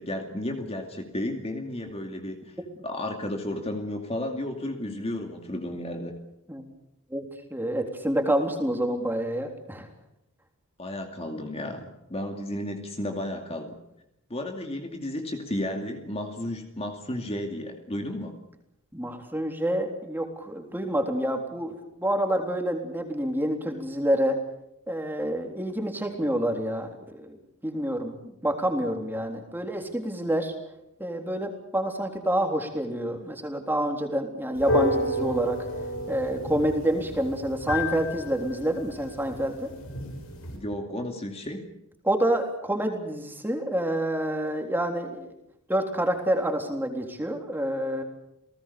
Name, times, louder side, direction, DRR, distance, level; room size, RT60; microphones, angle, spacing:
voice 1, 0.0-2.5 2.8-6.1 10.8-13.7 14.3-18.3 40.5-41.7, left 1 dB, 25° left, 4 dB, 2.5 m, -33 dB
voice 2, 7.5-9.9 18.9-24.4 24.9-27.4 27.6-30.5 31.0-35.6 36.1-39.7 42.0-45.3 45.7-48.0, right 1 dB, 10° right, 3 dB, 3.6 m, -28 dB
sound 1, 34.6-40.6, left 1 dB, 65° left, 7.4 m, -31 dB
29.5 x 19.0 x 6.9 m, 0.83 s
head